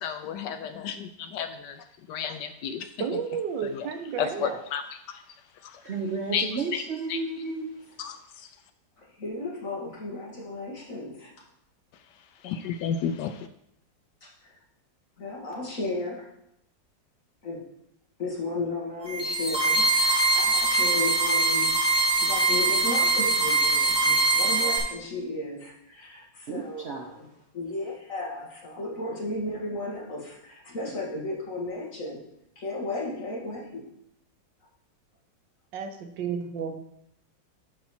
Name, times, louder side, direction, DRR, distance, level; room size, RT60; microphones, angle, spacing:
voice 1, 0.0-2.9 3.6-3.9 4.2-5.2 5.6-5.8 6.3-6.8 7.1-7.2 8.0-8.5 12.4-13.5, left 7 dB, 75° left, 9 dB, 1.1 m, -32 dB
voice 2, 3.0-4.6 35.7-36.8, right 7 dB, 75° right, 6 dB, 1.5 m, -32 dB
voice 3, 5.8-7.8 26.5-27.1, right 4 dB, 50° right, 0 dB, 0.8 m, -32 dB
voice 4, 9.0-11.3 14.2-14.5 15.2-16.3 17.4-17.6 18.2-21.7 22.2-27.3 27.5-32.2 32.6-33.8, left 2 dB, 45° left, -4 dB, 2.3 m, -34 dB
sound 1, 19.0-24.8, right 3 dB, 15° right, 2.2 m, -23 dB
11.5 x 4.2 x 4.3 m, 0.79 s
omnidirectional pair, 2.0 m